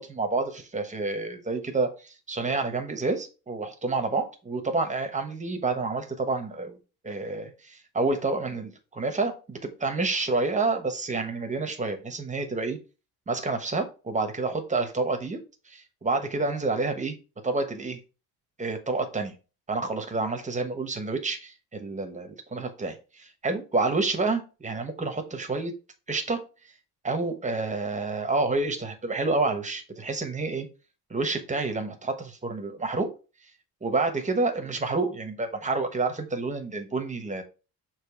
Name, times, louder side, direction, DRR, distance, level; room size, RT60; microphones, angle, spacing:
voice 1, 0.0-6.8 7.0-12.8 13.3-15.4 15.7-17.2 17.4-18.0 18.6-19.3 19.7-25.7 26.1-26.4 27.0-30.7 31.1-33.1 33.8-37.4, right 3 dB, 15° right, 6 dB, 1.0 m, -29 dB
6.8 x 3.1 x 4.5 m, 0.32 s
cardioid pair, 150°, 42 cm